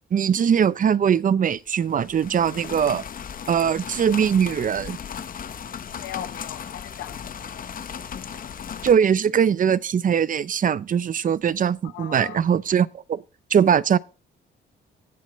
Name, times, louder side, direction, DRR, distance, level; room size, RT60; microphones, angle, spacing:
voice 1, 0.1-3.0 3.5-5.0 8.8-13.2 13.5-14.0, right 8 dB, 45° right, 0.6 m, -21 dB
sound 1, 1.7-8.9, left 7 dB, 45° left, 0.8 m, -36 dB
voice 2, 5.9-7.7 11.8-12.6, left 11 dB, 80° left, 1.1 m, -39 dB
16.0 x 7.4 x 3.1 m
cardioid pair, 90°, 20 cm